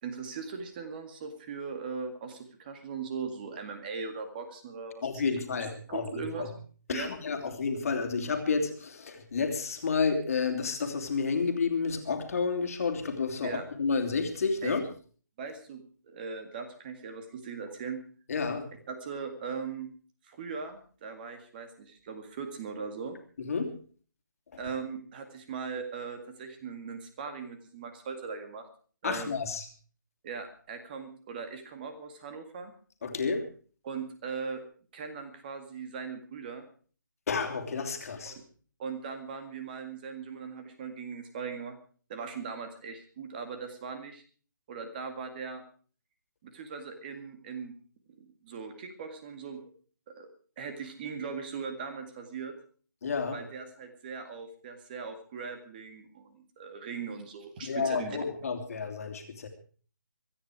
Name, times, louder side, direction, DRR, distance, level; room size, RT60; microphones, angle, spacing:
voice 1, 0.0-5.1 5.9-6.5 6.9-7.1 13.4-13.6 14.6-14.8 15.4-18.0 18.9-19.9 20.2-23.2 24.6-28.7 29.0-29.3 30.2-32.7 33.8-34.6 34.9-36.7 38.2-38.4 38.8-41.8 42.1-44.2 44.7-45.6 46.4-47.7 48.2-49.6 50.1-50.3 50.6-52.5 53.3-58.2, right 5 dB, 25° right, 8 dB, 2.1 m, -39 dB
voice 2, 5.0-6.5 6.9-14.8 18.3-18.7 23.4-23.8 29.0-29.7 33.0-33.5 37.3-38.4 53.0-53.4 57.6-59.5, left 5 dB, 45° left, 6 dB, 2.8 m, -30 dB
24.5 x 10.0 x 4.8 m, 0.42 s
figure-of-eight pair, 160°, 11 cm